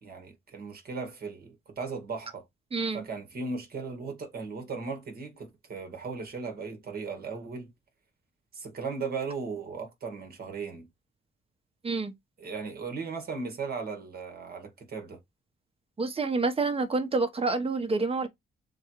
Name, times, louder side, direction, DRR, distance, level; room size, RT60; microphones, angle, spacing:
voice 1, 0.0-2.4 2.9-7.7 8.5-10.9 12.4-15.2, right 4 dB, 50° right, 1.8 m, -37 dB
voice 2, 2.7-3.0 11.8-12.1 16.0-18.3, right 3 dB, 30° right, 1.2 m, -28 dB
7.0 x 2.4 x 3.2 m
cardioid pair, 90°, 20 cm